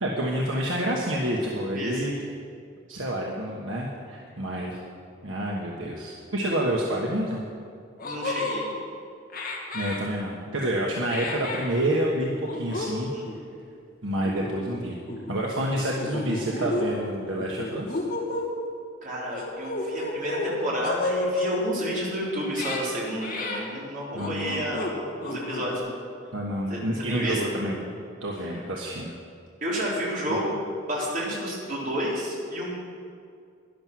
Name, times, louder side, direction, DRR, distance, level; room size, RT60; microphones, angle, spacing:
voice 1, 0.0-2.1 2.9-4.8 5.2-7.4 9.7-13.1 14.0-14.9 15.3-18.0 24.1-24.6 26.3-27.9 28.2-29.1 30.3-30.4, right 1 dB, 75° right, -2 dB, 1.3 m, -28 dB
sound 1, 7.5-7.6 8.0-8.6 9.3-10.0 11.1-11.7 12.4-12.9 13.2-13.4 14.2-14.8 15.1-15.3 16.0-16.9 17.4-18.5 19.3-20.5 20.8-21.6 22.4-22.8 23.2-23.6 24.2-24.9 25.2-25.8, left 2 dB, 50° left, 1.7 m, -31 dB
voice 2, 8.0-8.7 13.0-13.2 19.0-25.9 26.7-26.8 27.1-27.4 29.6-30.6 30.9-32.8, equal, 45° right, -5 dB, 3.9 m, -30 dB
12.0 x 11.0 x 6.1 m, 2.3 s
head